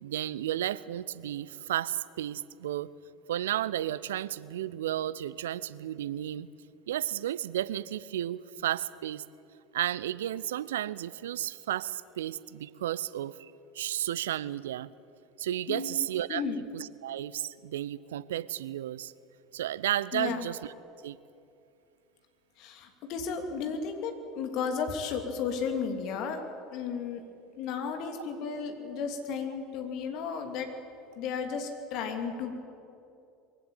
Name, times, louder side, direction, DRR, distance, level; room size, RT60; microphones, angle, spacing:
voice 1, 0.0-2.9 3.3-6.5 6.9-9.2 9.7-14.9 15.4-16.4 16.7-19.1 19.5-20.7 21.0-21.2, right 12 dB, 70° right, 19 dB, 0.5 m, -33 dB
voice 2, 15.7-16.6 20.1-20.5 22.6-26.4 26.7-27.2 27.6-30.7 31.1-32.5, left 6 dB, 50° left, 4 dB, 2.9 m, -34 dB
22.5 x 16.0 x 8.9 m, 2.6 s
figure-of-eight pair, 70°, 0 cm